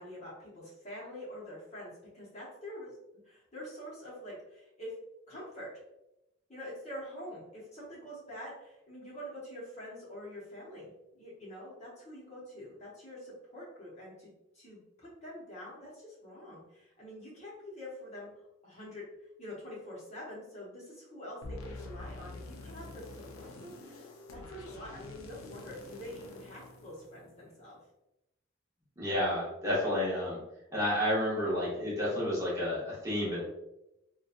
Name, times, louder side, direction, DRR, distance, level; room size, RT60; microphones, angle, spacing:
voice 1, 0.0-2.9 3.2-4.9 5.3-5.8 6.5-18.3 18.6-19.0 19.4-27.8, equal, 35° left, -6 dB, 0.8 m, -46 dB
sound 1, 21.4-27.6, left 2 dB, 85° left, 0.4 m, -47 dB
voice 2, 29.0-30.4 30.7-33.4, left 1 dB, 15° right, -7 dB, 0.9 m, -30 dB
2.7 x 2.2 x 2.4 m, 0.91 s
head